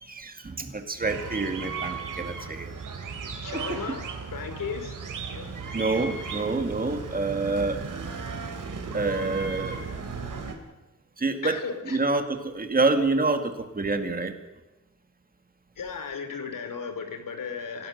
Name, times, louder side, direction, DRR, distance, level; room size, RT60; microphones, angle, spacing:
voice 1, 0.0-2.7 3.5-3.8 5.3-8.2 8.9-9.8 11.2-11.6 11.8-14.3, right 3 dB, 25° right, 6 dB, 2.2 m, -27 dB
sound 1, 1.0-10.5, right 5 dB, 75° right, 3.7 m, -36 dB
voice 2, 3.4-4.0 4.3-5.0 5.3-5.5 11.4-12.0 15.8-17.9, left 6 dB, 90° left, 8 dB, 3.1 m, -35 dB
26.0 x 17.5 x 6.7 m, 1.0 s
wide cardioid pair, 155°, 32 cm